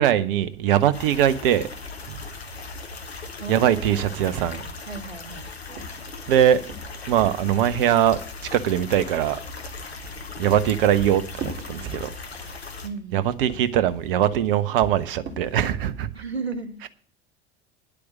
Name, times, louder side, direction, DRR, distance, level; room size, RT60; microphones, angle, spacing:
voice 1, 0.0-1.7 2.1-2.2 3.5-4.6 6.3-6.6 7.1-8.2 8.5-9.4 10.4-12.1 13.1-16.1, right 10 dB, 60° right, 1.1 m, -21 dB
sound 1, 0.9-12.9, left 4 dB, 80° left, 1.5 m, -38 dB
voice 2, 3.4-4.1 4.8-5.5 12.8-13.3 16.1-16.9, right 4 dB, 85° right, 1.4 m, -34 dB
sound 2, 5.7-8.3 10.0-12.5 13.3-16.0, right 3 dB, 40° right, 3.5 m, -39 dB
10.5 x 8.4 x 7.3 m
figure-of-eight pair, 70°, 31 cm